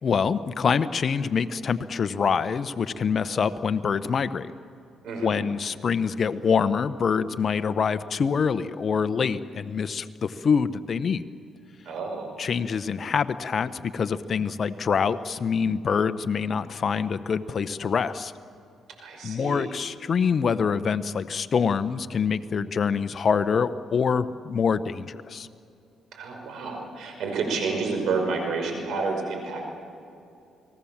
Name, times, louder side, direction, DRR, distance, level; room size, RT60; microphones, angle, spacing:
voice 1, 0.0-4.5 5.2-11.3 12.4-18.3 19.2-25.5, left 6 dB, 50° left, 12 dB, 0.9 m, -25 dB
voice 2, 5.0-5.4 11.8-12.3 19.0-19.7 26.1-29.6, right 4 dB, 75° right, 3 dB, 5.8 m, -29 dB
30.0 x 20.0 x 7.3 m, 2.6 s
cardioid pair, 90°, 0 cm